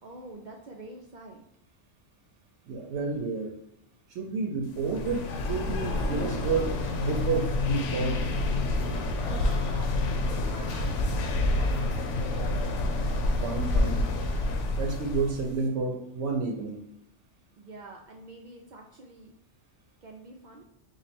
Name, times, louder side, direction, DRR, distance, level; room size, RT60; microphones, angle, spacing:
voice 1, 0.0-1.4 7.9-8.0 9.3-9.9 10.3-12.1 17.6-19.3 20.0-20.6, right 2 dB, 60° right, 0 dB, 0.5 m, -47 dB
voice 2, 2.7-3.5 4.1-8.1 13.4-14.1 14.8-16.8, right 4 dB, 80° right, 2 dB, 0.9 m, -30 dB
sound 1, 4.7-15.6, left 2 dB, 90° left, 0.9 m, -28 dB
3.0 x 2.4 x 4.2 m, 0.80 s
omnidirectional pair, 1.2 m